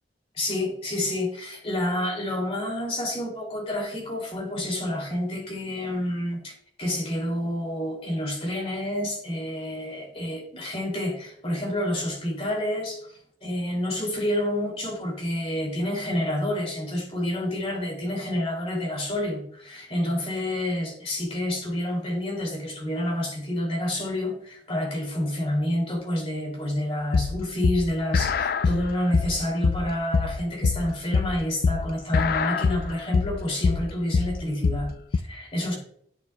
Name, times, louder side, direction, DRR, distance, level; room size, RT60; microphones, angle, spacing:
voice 1, 0.3-35.8, left 1 dB, 35° left, 0 dB, 2.5 m, -29 dB
sound 1, 27.1-35.2, left 4 dB, 55° left, 0.3 m, -24 dB
10.5 x 6.6 x 2.2 m, 0.66 s
head